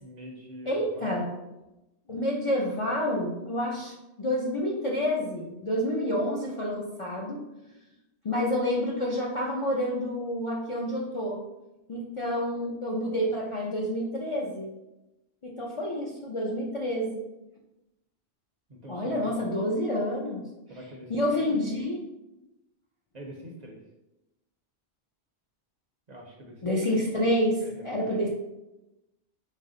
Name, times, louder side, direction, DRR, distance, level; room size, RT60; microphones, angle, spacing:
voice 1, 0.0-1.4 18.7-19.4 20.7-21.6 23.1-23.8 26.1-27.0 27.6-28.2, equal, 50° right, 0 dB, 0.6 m, -44 dB
voice 2, 0.7-1.3 2.1-7.4 8.2-11.4 11.9-14.7 15.4-17.2 18.9-20.5 21.1-22.0 26.6-28.3, equal, 45° left, -3 dB, 0.4 m, -28 dB
4.1 x 2.0 x 3.7 m, 0.95 s
omnidirectional pair, 1.1 m